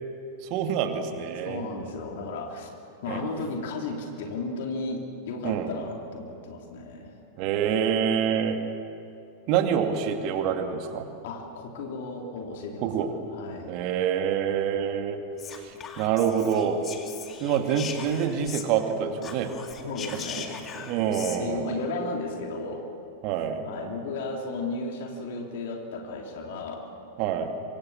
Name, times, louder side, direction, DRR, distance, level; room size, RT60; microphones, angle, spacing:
voice 1, 0.4-1.6 3.1-3.2 5.4-5.7 7.4-8.6 9.5-11.0 12.8-13.1 13.7-15.2 16.0-16.8 17.4-19.5 20.1-20.2 20.7-21.8 23.2-23.7 27.2-27.5, right 8 dB, 45° right, 5 dB, 2.5 m, -26 dB
voice 2, 1.5-2.7 3.0-7.2 11.2-13.8 19.8-20.9 21.4-22.9 23.7-26.9, left 3 dB, 55° left, 2 dB, 3.4 m, -34 dB
Whispering, 15.4-18.9 19.2-21.4, left 7 dB, 25° left, 2.4 m, -40 dB
26.0 x 25.0 x 7.5 m, 2.7 s
figure-of-eight pair, 90°, 0 cm